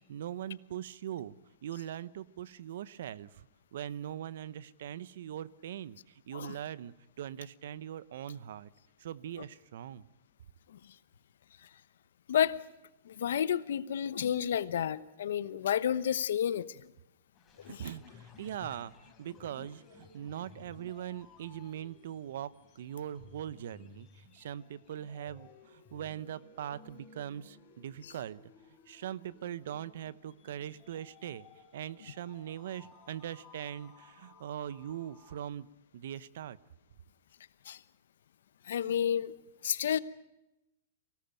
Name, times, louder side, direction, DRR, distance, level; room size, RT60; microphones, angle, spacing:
voice 1, 0.1-1.3 1.6-3.3 3.7-6.0 6.3-8.7 9.0-10.0 17.7-18.9 19.2-24.1 24.3-25.5 25.7-28.4 28.9-31.4 31.7-35.7 35.9-36.6, right 10 dB, 70° right, 0.9 m, -41 dB
voice 2, 13.1-16.7 17.6-17.8 37.7-37.8 38.7-39.3 39.6-40.0, left 9 dB, 75° left, 1.0 m, -30 dB
sound 1, 17.3-35.4, left 4 dB, 20° left, 4.0 m, -57 dB
24.0 x 18.0 x 9.1 m
hypercardioid pair, 130°, 0 cm